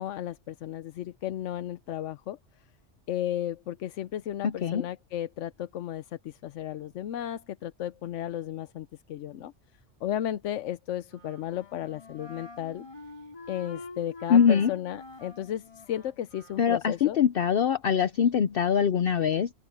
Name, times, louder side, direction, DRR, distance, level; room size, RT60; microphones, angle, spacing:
voice 1, 0.0-2.6 3.1-9.5 10.0-12.9 13.5-17.2, left 11 dB, 85° left, 1.0 m, -34 dB
voice 2, 4.4-4.9 14.3-14.7 16.6-19.5, left 7 dB, 60° left, 0.8 m, -23 dB
Wind instrument woodwind instrument, 11.0-16.7, left 2 dB, 25° left, 3.5 m, -46 dB
open air
omnidirectional pair, 1.2 m